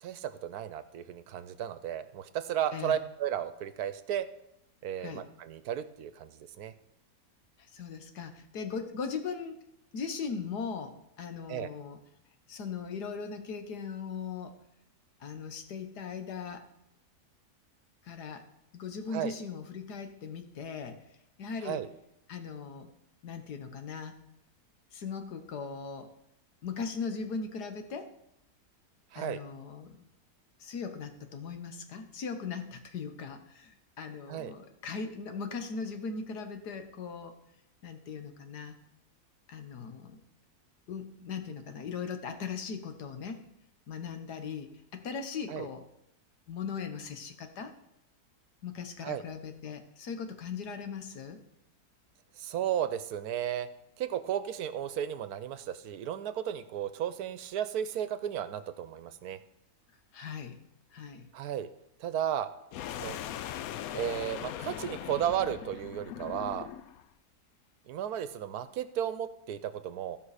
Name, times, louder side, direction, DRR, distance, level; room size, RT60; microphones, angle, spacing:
voice 1, 0.0-4.3 4.8-6.7 11.5-11.7 19.1-19.3 21.6-21.9 29.1-29.4 34.3-34.5 45.5-45.7 49.0-49.2 52.4-53.7 54.0-59.4 61.3-61.7 62.0-62.5 63.0-63.2 63.9-66.7 67.9-70.2, right 10 dB, 75° right, 13 dB, 1.2 m, -34 dB
voice 2, 7.7-9.6 9.9-12.0 12.5-14.5 15.2-16.6 18.0-18.4 18.7-21.0 21.4-21.8 22.3-22.9 23.2-24.2 24.9-26.1 26.6-28.1 29.2-30.1 30.6-37.3 37.8-38.8 39.5-40.2 40.9-43.4 43.9-45.8 46.5-47.7 48.6-51.4 60.1-60.6 60.9-61.3, left 5 dB, 85° left, 7 dB, 1.7 m, -39 dB
sound 1, 62.7-67.0, left 11 dB, 70° left, 1.0 m, -40 dB
16.0 x 5.6 x 4.9 m, 0.80 s
omnidirectional pair, 1.7 m